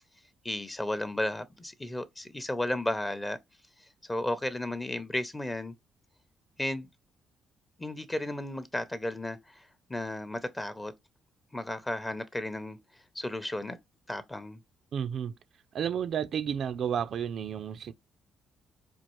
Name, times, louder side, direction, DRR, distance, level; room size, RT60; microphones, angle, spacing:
voice 1, 0.4-3.4 4.1-5.7 6.6-6.9 7.8-10.9 11.5-12.8 13.1-13.8 14.1-14.6, left 1 dB, 15° left, 0.6 m, -34 dB
voice 2, 14.9-15.4 15.7-17.9, right 8 dB, 60° right, 0.3 m, -31 dB
4.3 x 2.4 x 3.0 m
cardioid pair, 90°, 0 cm